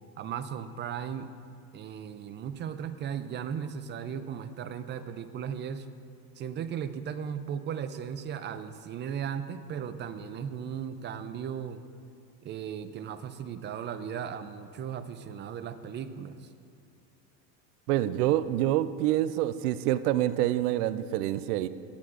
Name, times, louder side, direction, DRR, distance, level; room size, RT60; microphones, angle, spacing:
voice 1, 0.2-1.3 1.7-5.9 6.4-11.8 12.4-16.5, right 8 dB, 25° right, 12 dB, 0.4 m, -36 dB
voice 2, 17.9-21.7, right 13 dB, 65° right, 15 dB, 0.6 m, -26 dB
18.5 x 11.5 x 2.5 m, 2.3 s
hypercardioid pair, 100°, 49 cm